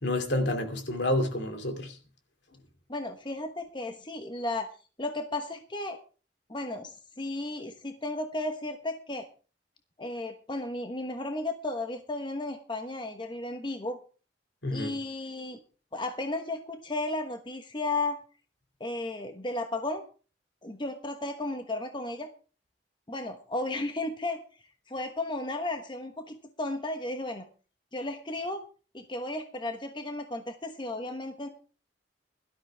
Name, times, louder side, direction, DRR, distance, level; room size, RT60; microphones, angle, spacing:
voice 1, 0.0-2.0 14.6-15.0, left 1 dB, 70° left, 2.6 m, -29 dB
voice 2, 2.9-4.7 5.0-6.0 6.5-9.3 10.0-14.0 14.7-15.6 15.9-18.2 18.8-20.0 20.6-22.3 23.1-27.5 27.9-28.6 28.9-31.5, left 2 dB, 25° left, 1.1 m, -34 dB
17.0 x 12.5 x 3.4 m
head